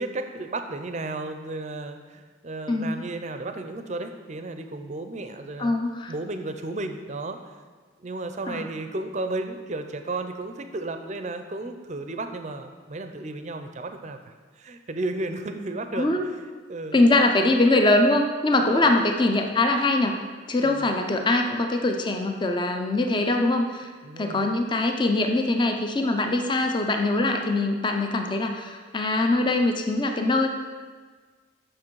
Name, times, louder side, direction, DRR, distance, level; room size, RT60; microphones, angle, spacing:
voice 1, 0.0-5.7 6.1-7.4 8.0-17.0 18.6-18.9 20.6-20.9 24.0-24.5, right 2 dB, 35° right, 7 dB, 0.5 m, -33 dB
voice 2, 2.7-3.0 5.6-6.1 8.5-8.6 15.9-16.2 16.9-20.1 20.5-23.9 24.2-30.5, left 2 dB, 25° left, 4 dB, 0.5 m, -22 dB
7.5 x 6.2 x 4.6 m, 1.5 s
head